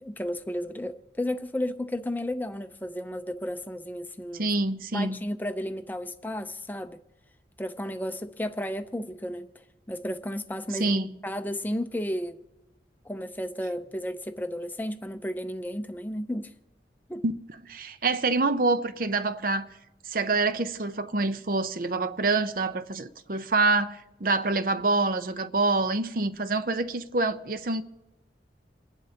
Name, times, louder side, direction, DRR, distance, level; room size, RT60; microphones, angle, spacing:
voice 1, 0.0-4.5 4.9-7.0 7.6-9.5 9.9-12.4 13.0-16.5 17.1-17.2, left 1 dB, 10° left, 0.6 m, -33 dB
voice 2, 4.3-5.2 10.8-11.1 17.2-17.3 17.6-19.7 20.0-27.8, right 3 dB, 50° right, 0.7 m, -26 dB
28.5 x 11.0 x 2.9 m
head